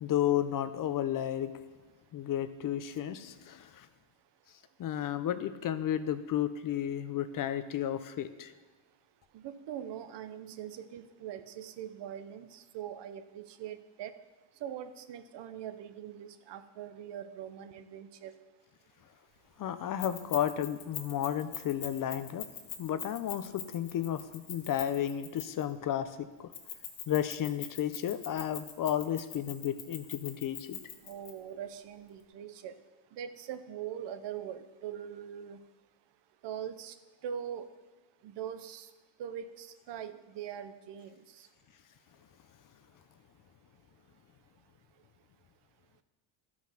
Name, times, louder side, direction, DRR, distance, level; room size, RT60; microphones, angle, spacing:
voice 1, 0.0-1.5 2.1-3.9 4.8-8.5 19.6-22.5 22.8-26.5 27.1-30.8, left 10 dB, 40° left, 12 dB, 0.6 m, -32 dB
voice 2, 9.3-14.1 14.6-18.3 31.0-32.7 33.1-35.6 36.4-37.0 37.2-37.7 38.2-38.9 39.2-41.5, right 9 dB, 55° right, 11 dB, 0.9 m, -42 dB
Keys jangling, 20.0-25.7 26.5-31.3, left 10 dB, 70° left, 2.0 m, -42 dB
13.0 x 6.1 x 5.7 m, 1.1 s
cardioid pair, 125°, 49 cm